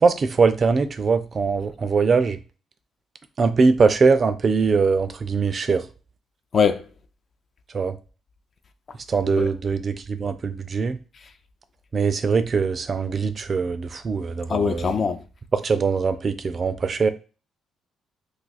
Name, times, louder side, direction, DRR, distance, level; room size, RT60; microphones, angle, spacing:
voice 1, 0.0-2.4 3.4-5.8 7.7-8.0 9.1-11.0 11.9-14.9 15.5-17.1, right 4 dB, 40° right, 0.4 m, -21 dB
voice 2, 6.5-6.8 9.4-9.5 14.5-15.2, left 6 dB, 45° left, 0.4 m, -21 dB
2.5 x 2.4 x 4.1 m
cardioid pair, 90°, 0 cm